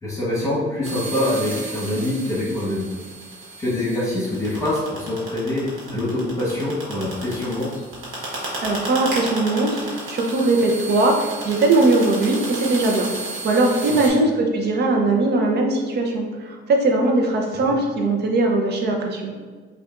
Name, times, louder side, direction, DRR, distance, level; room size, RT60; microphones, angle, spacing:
voice 1, 0.0-2.9 3.6-7.7 14.1-14.2 17.6-17.7, left 1 dB, 15° left, -8 dB, 1.3 m, -25 dB
sound 1, 0.8-14.1, right 2 dB, 85° right, 1.2 m, -33 dB
voice 2, 8.3-13.1 13.4-19.3, right 2 dB, 55° right, 2 dB, 0.7 m, -20 dB
5.1 x 2.4 x 2.5 m, 1.5 s
cardioid pair, 90°, 20 cm